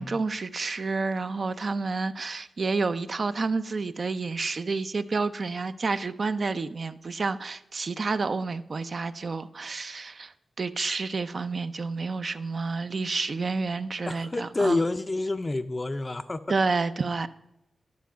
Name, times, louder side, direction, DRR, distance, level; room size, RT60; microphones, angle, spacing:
voice 1, 0.0-10.3 10.6-14.8 16.5-17.3, right 4 dB, 55° right, 12 dB, 0.5 m, -29 dB
voice 2, 14.1-16.4, left 2 dB, 30° left, 8 dB, 0.4 m, -28 dB
11.5 x 4.6 x 6.2 m, 0.89 s
cardioid pair, 70°, 0 cm